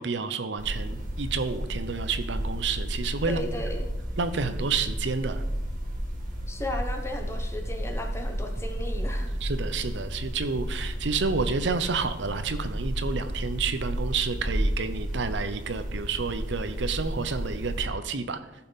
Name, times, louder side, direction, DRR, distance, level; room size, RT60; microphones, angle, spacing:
voice 1, 0.0-3.7 4.2-5.4 9.4-18.4, right 4 dB, 65° right, 10 dB, 0.7 m, -30 dB
sound 1, 0.6-17.9, equal, 45° right, 2.2 m, -32 dB
voice 2, 3.3-3.9 6.5-9.3, left 1 dB, 15° left, 4 dB, 1.0 m, -35 dB
14.5 x 5.7 x 4.0 m, 0.98 s
head